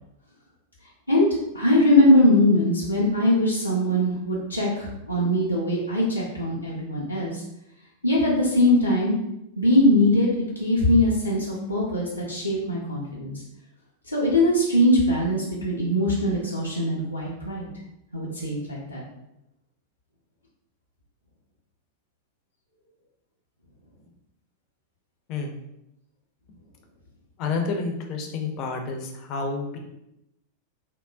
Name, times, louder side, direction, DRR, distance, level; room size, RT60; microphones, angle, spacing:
voice 1, 1.5-7.4 8.0-9.1 9.6-13.3 14.1-17.7 18.1-19.0, left 1 dB, 85° left, -6 dB, 0.5 m, -21 dB
voice 2, 27.4-29.8, left 4 dB, 40° left, 3 dB, 0.5 m, -29 dB
3.6 x 2.0 x 2.3 m, 0.85 s
figure-of-eight pair, 90°, 0 cm